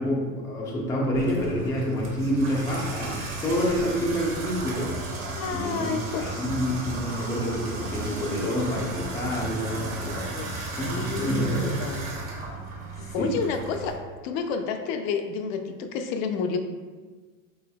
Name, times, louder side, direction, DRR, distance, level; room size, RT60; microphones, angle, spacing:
voice 1, 0.0-4.9 5.5-5.9 6.2-10.5 10.8-11.7 13.0-13.3, equal, 10° left, -3 dB, 0.3 m, -28 dB
Water tap faucet / Bathtub (filling or washing), 1.1-13.9, right 2 dB, 85° right, 1.3 m, -35 dB
voice 2, 5.2-6.5 10.3-11.5 11.8-12.1 13.0-13.9 14.2-16.6, left 5 dB, 75° left, 6 dB, 0.6 m, -30 dB
4.2 x 3.8 x 2.2 m, 1.4 s
supercardioid pair, 140°, 40 cm